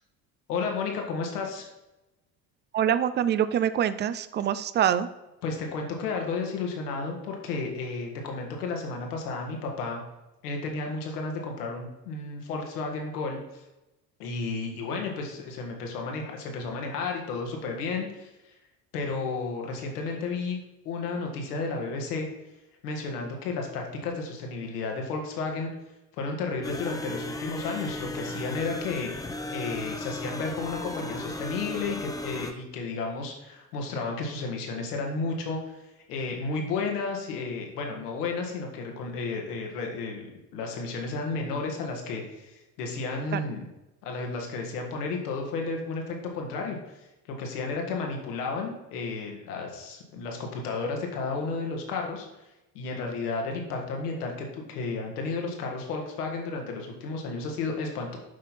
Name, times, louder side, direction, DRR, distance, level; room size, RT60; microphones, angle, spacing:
voice 1, 0.5-1.7 5.4-10.0 10.4-13.6 14.2-18.6 18.9-20.6 20.9-22.3 22.8-25.7 26.2-29.1 29.5-35.8 36.1-43.7 44.0-52.5 52.7-58.2, left 4 dB, 70° left, 2 dB, 1.9 m, -32 dB
voice 2, 2.7-5.1 43.3-43.4, right 9 dB, 25° right, 13 dB, 0.4 m, -25 dB
sound 1, 26.6-32.5, left 2 dB, 5° left, 0.8 m, -36 dB
8.5 x 5.8 x 4.2 m, 0.98 s
figure-of-eight pair, 65°, 49 cm